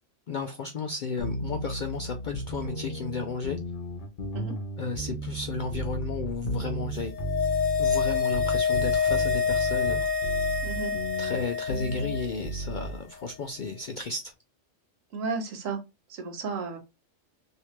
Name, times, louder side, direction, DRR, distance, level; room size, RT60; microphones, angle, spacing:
voice 1, 0.3-3.6 4.8-7.1 7.8-10.0 11.2-14.3, left 4 dB, 65° left, 0.4 m, -33 dB
sound 1, 1.2-13.0, right 1 dB, 45° left, 0.8 m, -34 dB
sound 2, 7.0-12.5 12.7-12.8, left 6 dB, 90° left, 1.3 m, -27 dB
voice 2, 10.6-10.9 15.1-15.8 16.1-16.8, right 4 dB, 85° right, 1.4 m, -33 dB
3.2 x 2.8 x 2.9 m
omnidirectional pair, 1.3 m